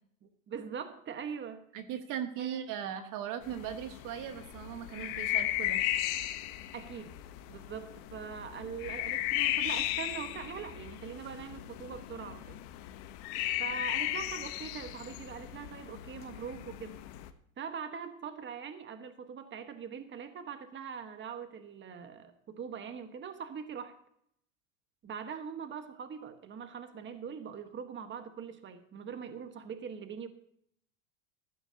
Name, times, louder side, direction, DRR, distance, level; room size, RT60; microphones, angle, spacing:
voice 1, 0.2-1.6 2.4-2.6 6.7-7.2 7.5-12.6 13.6-17.0 17.6-24.0 25.0-30.3, right 7 dB, 30° right, 8 dB, 1.4 m, -42 dB
voice 2, 1.7-5.8, right 9 dB, 55° right, 8 dB, 1.4 m, -38 dB
sound 1, 3.4-17.3, left 14 dB, 60° left, 1.1 m, -36 dB
15.0 x 13.5 x 2.8 m, 0.70 s
hypercardioid pair, 95°, 38 cm